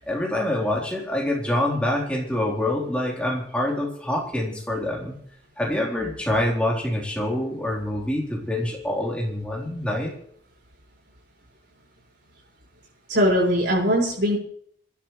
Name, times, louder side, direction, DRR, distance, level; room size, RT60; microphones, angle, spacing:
voice 1, 0.1-5.1 5.6-10.1, left 1 dB, 5° left, -3 dB, 3.8 m, -26 dB
voice 2, 13.1-14.4, equal, 85° right, -5 dB, 7.4 m, -20 dB
26.5 x 12.0 x 3.3 m, 0.64 s
head